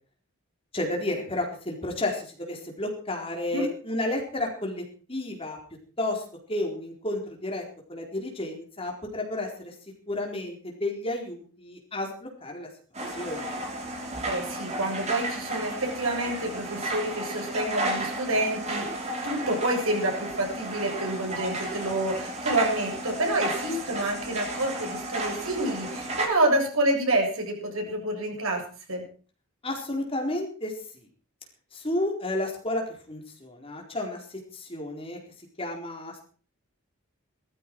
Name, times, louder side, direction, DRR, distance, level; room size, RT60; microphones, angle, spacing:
voice 1, 0.7-4.8 5.1-5.6 6.0-6.2 6.5-7.6 7.9-9.7 10.1-12.7 13.1-13.6 29.6-31.1 31.7-35.2 35.6-36.2, left 1 dB, 25° left, 1 dB, 4.3 m, -32 dB
sound 1, 12.9-26.3, right 1 dB, 30° right, 3.7 m, -33 dB
voice 2, 14.3-18.9 19.2-28.6 28.9-29.0, right 1 dB, 75° right, 0 dB, 7.5 m, -28 dB
18.5 x 14.0 x 4.7 m, 0.42 s
head